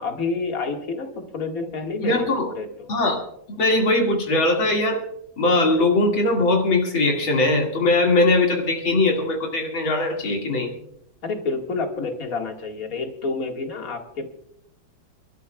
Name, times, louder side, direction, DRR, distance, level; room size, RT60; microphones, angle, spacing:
voice 1, 0.0-2.9 11.2-14.5, left 4 dB, 45° left, 2 dB, 2.3 m, -29 dB
voice 2, 2.0-2.5 2.9-3.2 3.6-5.0 5.4-10.7, left 2 dB, 75° left, 0 dB, 3.0 m, -20 dB
29.5 x 13.0 x 2.3 m, 0.73 s
omnidirectional pair, 2.2 m